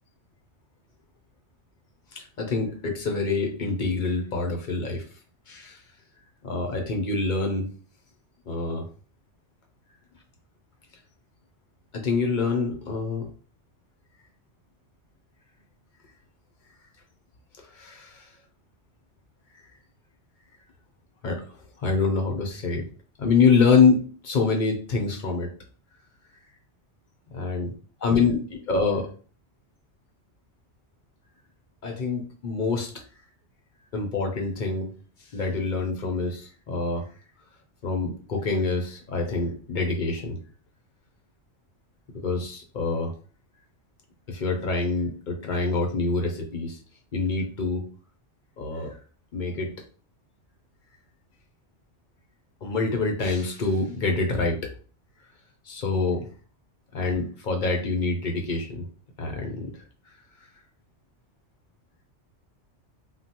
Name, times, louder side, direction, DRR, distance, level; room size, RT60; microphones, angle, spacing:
voice 1, 2.1-5.0 5.5-5.8 6.4-7.7 8.5-8.9 11.9-13.3 17.6-18.3 21.2-22.9 23.2-25.5 27.3-27.7 28.0-29.1 31.8-33.0 33.9-34.9 35.2-37.1 37.8-40.4 42.2-43.1 44.3-46.8 47.1-47.9 48.6-49.0 49.3-49.7 52.6-54.7 55.7-56.3 56.9-58.9 59.2-59.8, left 4 dB, 55° left, 2 dB, 0.6 m, -26 dB
3.2 x 2.1 x 2.8 m, 0.39 s
omnidirectional pair, 1.2 m